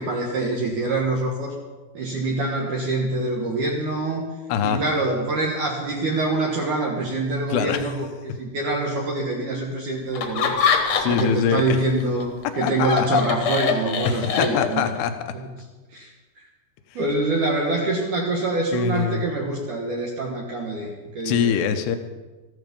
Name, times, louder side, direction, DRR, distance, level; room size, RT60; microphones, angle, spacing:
voice 1, 0.0-1.5 1.9-4.3 4.6-10.7 11.1-12.3 12.5-14.8 15.3-15.5 15.9-16.1 17.0-20.9 21.2-21.5, right 2 dB, 60° right, -1 dB, 2.6 m, -25 dB
voice 2, 4.5-4.8 7.5-7.8 10.9-11.8 12.6-13.2 14.1-15.3 18.7-19.2 21.2-22.0, left 8 dB, 90° left, 8 dB, 3.0 m, -24 dB
Laughter, 10.1-11.4 11.8-15.0, left 6 dB, 55° left, 2.0 m, -23 dB
14.5 x 12.5 x 5.3 m, 1.2 s
omnidirectional pair, 4.7 m